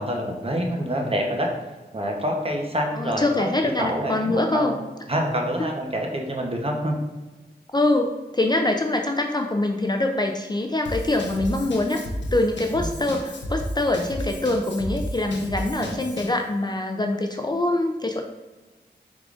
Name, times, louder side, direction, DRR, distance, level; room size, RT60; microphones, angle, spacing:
voice 1, 0.0-1.5 1.9-3.5 3.8-4.8 5.1-7.0 15.7-16.1, equal, 35° right, 1 dB, 0.8 m, -26 dB
voice 2, 2.9-4.7 7.7-12.0 12.3-18.2, left 2 dB, 25° left, 3 dB, 0.4 m, -24 dB
Drum kit / Drum, 10.8-16.4, equal, 85° left, 0.6 m, -33 dB
4.7 x 3.6 x 2.4 m, 1.2 s
wide cardioid pair, 50°, 18 cm